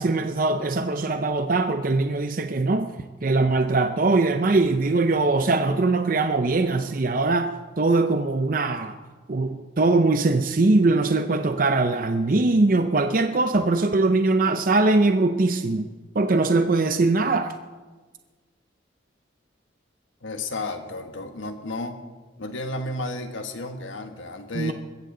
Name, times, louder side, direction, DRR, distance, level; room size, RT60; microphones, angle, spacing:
voice 1, 0.0-2.9 3.2-8.9 9.3-15.9 16.1-17.5 24.5-24.7, right 3 dB, 45° right, 8 dB, 0.6 m, -21 dB
voice 2, 20.2-22.0 22.4-24.7, left 2 dB, 85° left, 6 dB, 1.5 m, -32 dB
20.5 x 15.0 x 3.9 m, 1.3 s
head